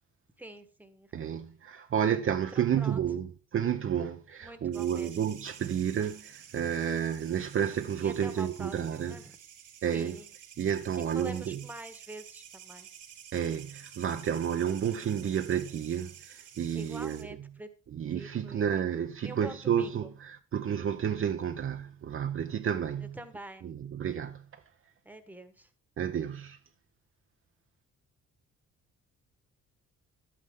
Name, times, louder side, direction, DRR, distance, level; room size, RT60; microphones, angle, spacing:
voice 1, 0.4-1.5 2.5-3.0 4.4-5.2 8.0-9.4 9.9-10.3 11.1-12.9 16.7-17.7 18.1-18.9 19.2-20.1 23.0-23.7 25.0-25.7, right 1 dB, 5° right, 1.2 m, -45 dB
voice 2, 1.1-9.2 9.8-10.2 10.6-11.6 13.3-17.2 17.9-23.2 23.6-24.4 26.0-26.6, right 8 dB, 45° right, 0.6 m, -31 dB
sound 1, 4.7-17.2, right 9 dB, 85° right, 1.8 m, -51 dB
11.0 x 8.6 x 3.6 m
cardioid pair, 90°, 30 cm